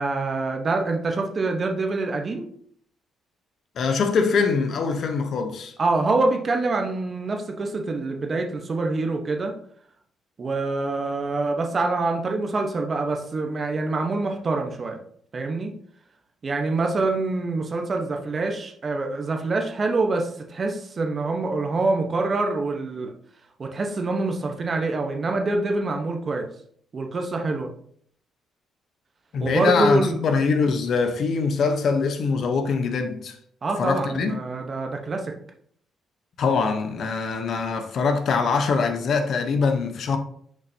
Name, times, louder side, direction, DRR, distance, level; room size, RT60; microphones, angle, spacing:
voice 1, 0.0-2.5 5.8-9.5 10.4-15.0 15.3-15.7 16.4-23.1 23.6-26.5 26.9-27.7 29.4-30.2 33.6-35.3, right 3 dB, 40° right, 1.0 m, -25 dB
voice 2, 3.8-5.7 29.3-33.4 33.8-34.4 36.4-40.2, left 5 dB, 60° left, 0.8 m, -23 dB
6.4 x 5.3 x 2.8 m
cardioid pair, 90°, 0 cm